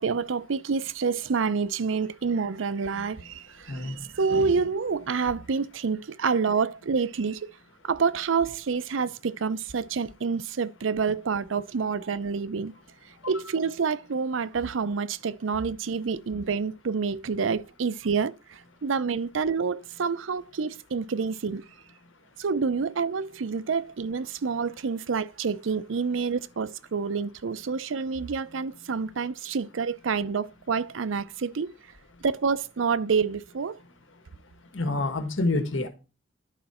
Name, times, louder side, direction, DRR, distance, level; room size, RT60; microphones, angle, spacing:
voice 1, 0.0-7.5 7.8-12.7 13.3-21.6 22.4-31.7 32.2-33.8, right 5 dB, 85° right, 0.5 m, -28 dB
voice 2, 3.6-4.1 34.7-35.9, left 2 dB, 85° left, 1.7 m, -28 dB
11.0 x 5.1 x 4.3 m
head